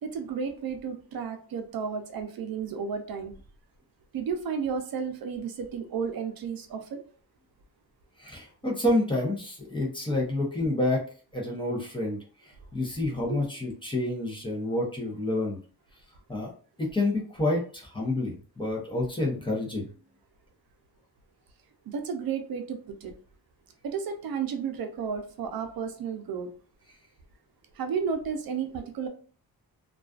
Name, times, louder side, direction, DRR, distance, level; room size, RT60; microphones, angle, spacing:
voice 1, 0.0-3.3 4.1-7.0 13.3-13.4 21.9-23.1 23.8-26.5 27.8-29.1, right 6 dB, 70° right, 6 dB, 0.5 m, -32 dB
voice 2, 8.2-11.0 11.3-12.2 12.4-15.6 16.3-16.5 16.8-19.9, left 1 dB, 15° left, -2 dB, 0.6 m, -28 dB
2.3 x 2.3 x 2.3 m, 0.41 s
wide cardioid pair, 160°, 36 cm